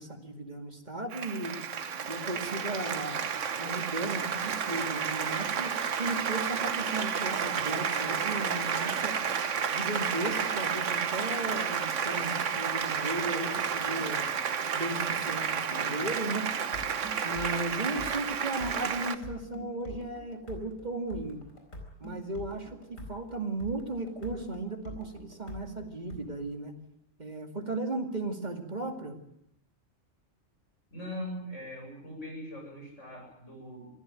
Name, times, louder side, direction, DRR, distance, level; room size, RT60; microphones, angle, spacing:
voice 1, 0.0-1.6 2.1-3.2 3.6-9.2 9.7-14.2 14.7-16.5 17.2-21.4 22.0-26.7 27.2-29.2, right 2 dB, 35° right, 5 dB, 2.5 m, -36 dB
Applause, 1.1-19.2, right 7 dB, 70° right, 1.4 m, -31 dB
sound 1, 15.7-17.3, left 4 dB, 15° left, 6.0 m, -53 dB
sound 2, 16.7-26.2, equal, 80° left, 4.9 m, -45 dB
voice 2, 30.9-33.9, left 1 dB, 65° left, 1 dB, 8.2 m, -41 dB
25.0 x 15.0 x 9.0 m, 0.76 s
omnidirectional pair, 1.4 m